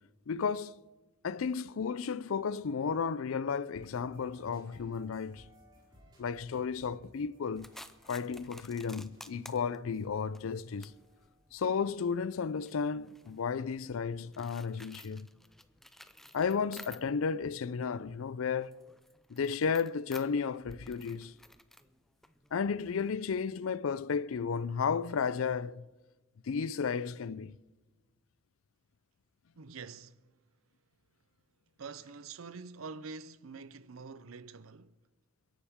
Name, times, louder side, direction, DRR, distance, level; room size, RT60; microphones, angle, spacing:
voice 1, 0.3-0.8 1.2-5.4 6.2-7.7 8.1-10.9 11.5-15.3 16.3-18.8 19.3-21.3 22.5-25.9 26.5-27.6, left 6 dB, 80° left, 0.4 m, -33 dB
sound 1, 3.7-11.6, equal, 20° right, 5.4 m, -62 dB
sound 2, 7.6-17.4 17.7-23.1, left 1 dB, ahead, 0.5 m, -54 dB
voice 2, 29.6-30.3 31.8-35.0, right 4 dB, 80° right, 0.6 m, -46 dB
29.0 x 11.5 x 3.6 m
head